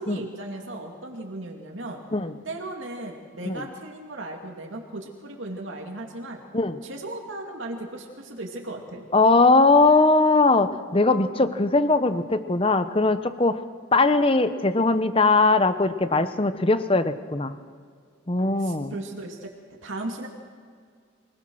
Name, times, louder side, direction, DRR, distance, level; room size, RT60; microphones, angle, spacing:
voice 1, 0.0-2.0 2.4-6.4 6.8-9.0 18.6-19.5 19.8-20.3, right 2 dB, 75° right, 1 dB, 2.5 m, -36 dB
voice 2, 9.1-13.6 13.9-17.6 18.3-18.9, left 3 dB, 25° left, 11 dB, 0.8 m, -20 dB
24.5 x 19.0 x 6.4 m, 2.1 s
head